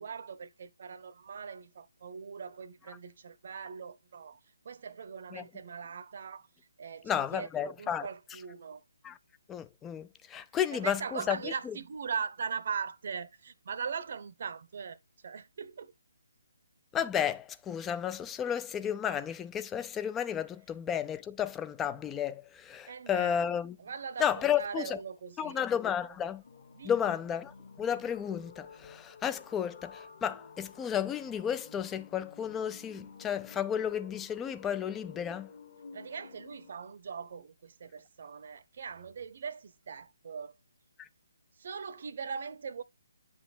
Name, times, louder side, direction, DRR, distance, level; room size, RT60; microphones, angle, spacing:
voice 1, 0.0-4.4 4.6-6.5 6.8-8.8 10.7-15.9 22.9-23.4 23.8-25.6 26.1-26.2 26.7-27.1 35.9-40.5 41.6-42.8, right 6 dB, 50° right, 0.8 m, -40 dB
voice 2, 7.0-8.1 9.0-9.2 9.5-11.5 16.9-23.7 24.2-25.0 25.4-26.4 26.8-35.5 41.0-41.1, left 9 dB, 10° left, 0.5 m, -32 dB
sound 1, 26.4-36.7, left 5 dB, 50° left, 3.4 m, -52 dB
10.0 x 6.2 x 2.2 m
figure-of-eight pair, 145°, 0 cm